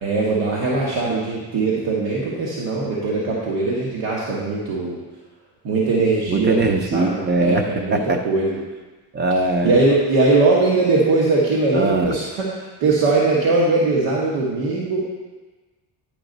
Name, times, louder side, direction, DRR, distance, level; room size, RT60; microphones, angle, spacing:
voice 1, 0.0-5.0 5.6-8.0 8.2-8.6 9.6-15.0, right 3 dB, 85° right, -5 dB, 1.4 m, -20 dB
voice 2, 6.3-8.2 9.1-9.7 11.7-12.1, right 2 dB, 25° right, 6 dB, 0.4 m, -21 dB
10.0 x 5.3 x 3.9 m, 1.3 s
cardioid pair, 170°, 47 cm